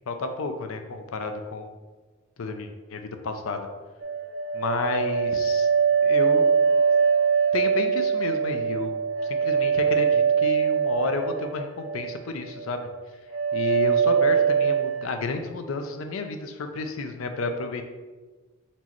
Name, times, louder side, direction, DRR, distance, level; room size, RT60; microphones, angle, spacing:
voice 1, 0.1-1.7 2.4-3.6 4.5-5.7 6.0-6.5 7.5-8.9 9.2-12.9 13.5-17.9, left 3 dB, 80° left, 6 dB, 0.5 m, -31 dB
sound 1, 4.0-12.1 12.4-13.0 13.3-15.1, right 6 dB, 60° right, 0.4 m, -23 dB
4.4 x 4.0 x 3.0 m, 1.3 s
head